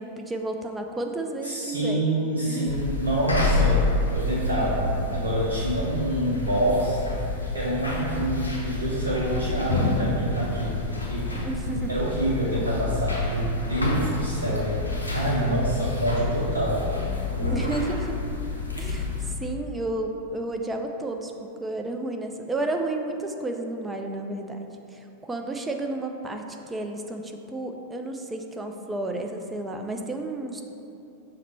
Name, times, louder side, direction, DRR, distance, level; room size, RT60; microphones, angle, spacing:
voice 1, 0.0-2.7 11.3-11.9 17.4-18.2 18.8-30.6, right 2 dB, 10° right, 3 dB, 0.4 m, -32 dB
voice 2, 1.4-4.9 5.1-7.0 7.5-10.8 11.1-11.4 11.9-16.8, right 1 dB, 70° right, -6 dB, 0.6 m, -27 dB
sound 1, 2.7-19.3, left 3 dB, 85° left, 0.6 m, -28 dB
5.8 x 2.1 x 4.4 m, 2.9 s
figure-of-eight pair, 90°, 0 cm